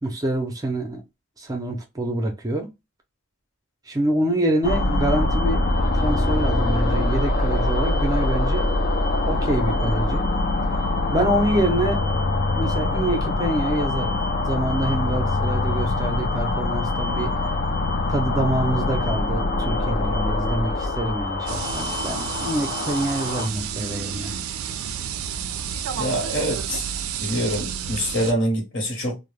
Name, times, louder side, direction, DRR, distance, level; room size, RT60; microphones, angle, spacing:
voice 1, 0.0-1.0 1.4-2.7 3.9-5.6 5.9-8.7 9.2-10.3 11.1-12.0 12.5-14.2 14.5-17.3 18.1-24.3, right 1 dB, 15° right, 0.5 m, -26 dB
sound 1, 4.6-23.5, left 2 dB, 40° left, 0.4 m, -23 dB
sound 2, 21.5-28.3, right 8 dB, 80° right, 0.3 m, -30 dB
voice 2, 25.9-26.8 27.2-29.2, equal, 60° left, 1.0 m, -25 dB
2.2 x 2.0 x 3.0 m
head